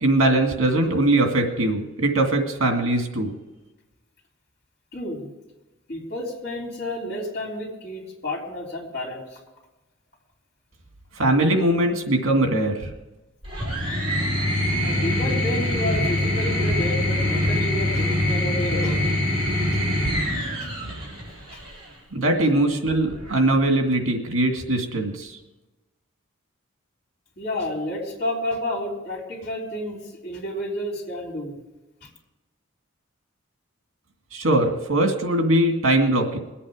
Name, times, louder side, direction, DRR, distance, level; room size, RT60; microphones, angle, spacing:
voice 1, 0.0-3.3 11.2-12.9 22.1-25.4 34.3-36.4, right 1 dB, 75° right, 4 dB, 2.2 m, -21 dB
voice 2, 4.9-5.3 5.9-9.4 14.8-19.0 19.7-19.8 20.6-20.7 21.5-21.6 27.4-31.5 32.0-32.1, left 1 dB, 50° left, -1 dB, 3.7 m, -30 dB
sound 1, 13.4-21.8 23.0-23.7, left 1 dB, 25° right, 3.9 m, -24 dB
21.5 x 8.5 x 5.0 m, 1.1 s
head